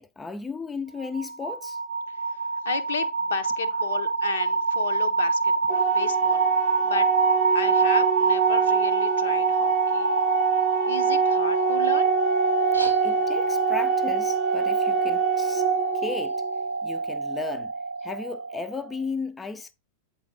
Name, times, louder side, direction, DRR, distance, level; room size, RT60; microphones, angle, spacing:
voice 1, 0.0-1.8 13.0-15.7 15.9-16.4 16.8-17.7 18.0-19.7, left 4 dB, 15° left, 0.4 m, -35 dB
sound 1, 1.0-18.9, right 3 dB, 85° right, 0.6 m, -25 dB
voice 2, 2.1-7.1 7.5-10.2 10.5-12.2, left 7 dB, 65° left, 0.7 m, -34 dB
Organ, 5.7-16.7, right 8 dB, 40° right, 0.7 m, -26 dB
sound 2, 12.5-17.5, left 1 dB, 90° left, 1.3 m, -46 dB
8.4 x 4.0 x 3.7 m
figure-of-eight pair, 90°, 0 cm